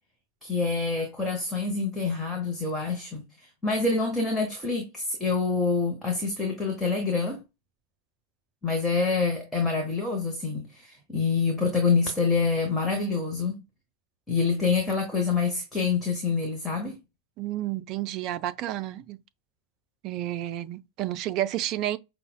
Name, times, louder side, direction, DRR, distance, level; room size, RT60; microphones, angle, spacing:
voice 1, 0.4-7.4 8.6-13.5 14.3-17.0, left 4 dB, 5° left, 0.8 m, -26 dB
voice 2, 17.4-19.2 20.0-22.0, right 13 dB, 40° right, 0.3 m, -31 dB
5.4 x 2.1 x 2.2 m
figure-of-eight pair, 90°, 0 cm